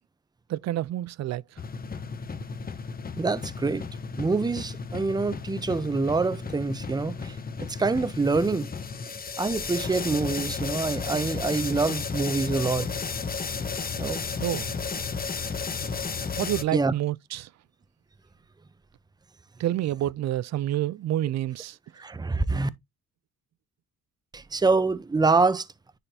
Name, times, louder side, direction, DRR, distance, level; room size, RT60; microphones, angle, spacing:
voice 1, 0.5-1.6 14.4-14.7 16.4-17.5 19.6-21.8, right 13 dB, 60° right, 0.5 m, -28 dB
sound 1, 1.6-16.6, left 5 dB, 30° left, 1.0 m, -33 dB
voice 2, 3.2-3.9 4.2-8.7 9.4-12.9 14.0-14.2 16.7-16.9 22.0-22.7 24.3-25.7, right 3 dB, 15° right, 0.7 m, -26 dB
10.0 x 4.2 x 2.8 m
cardioid pair, 90°, 30 cm